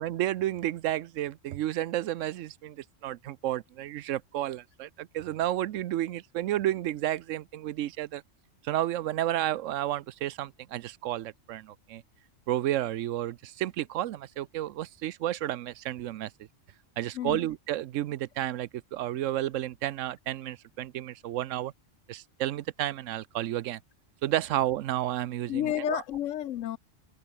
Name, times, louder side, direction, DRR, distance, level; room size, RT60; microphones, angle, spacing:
voice 1, 0.0-8.2 8.6-12.0 12.5-16.3 17.0-21.7 22.1-23.8 24.2-26.0, right 13 dB, 85° right, 1.0 m, -31 dB
voice 2, 25.5-26.8, left 12 dB, 85° left, 1.0 m, -31 dB
open air
omnidirectional pair, 1.3 m